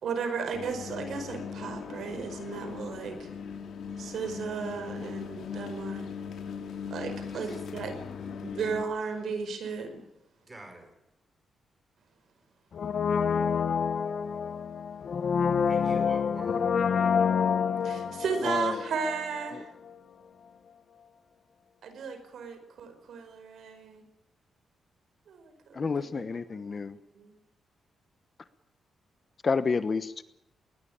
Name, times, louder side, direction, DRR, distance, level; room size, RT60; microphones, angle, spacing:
voice 1, 0.0-3.3 4.0-6.1 6.9-8.0 8.4-10.0 17.8-19.7 21.8-24.0 25.3-26.9 27.1-27.3, right 5 dB, 70° right, 9 dB, 5.0 m, -35 dB
sound 1, 0.5-8.8, left 6 dB, 70° left, 3.5 m, -39 dB
voice 2, 7.3-8.6 10.4-10.9 15.7-16.7, right 1 dB, 15° right, 6 dB, 6.2 m, -46 dB
Brass instrument, 12.7-19.6 19.9-20.0, left 6 dB, 50° left, 1.2 m, -28 dB
voice 3, 18.4-18.8 25.7-27.0 29.4-30.2, left 4 dB, 30° left, 13 dB, 1.0 m, -29 dB
20.5 x 20.0 x 8.8 m, 0.86 s
wide cardioid pair, 160°, 0 cm